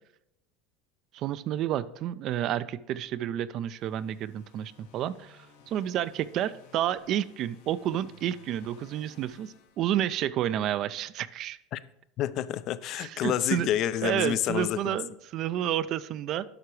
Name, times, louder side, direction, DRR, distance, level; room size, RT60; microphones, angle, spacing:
voice 1, 1.1-11.6 12.9-13.7 14.0-16.5, right 11 dB, 50° right, 0.3 m, -30 dB
sound 1, 3.6-10.5, left 5 dB, 85° left, 1.1 m, -57 dB
voice 2, 12.2-15.0, left 12 dB, 50° left, 0.4 m, -29 dB
11.5 x 5.8 x 3.2 m
supercardioid pair, 125°, 0 cm